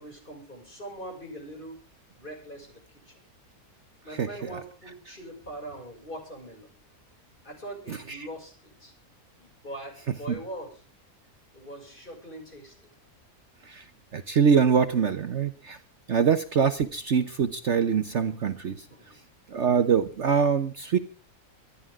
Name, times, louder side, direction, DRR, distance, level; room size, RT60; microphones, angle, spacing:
voice 1, 0.0-1.8 2.2-3.2 4.0-6.7 7.4-8.9 9.4-10.8 11.5-12.7 18.9-19.2, right 1 dB, 35° left, 3 dB, 6.6 m, -42 dB
voice 2, 14.1-15.8 16.1-18.8 19.5-21.0, right 6 dB, 55° right, 10 dB, 1.1 m, -24 dB
25.5 x 11.0 x 3.7 m, 0.38 s
omnidirectional pair, 1.6 m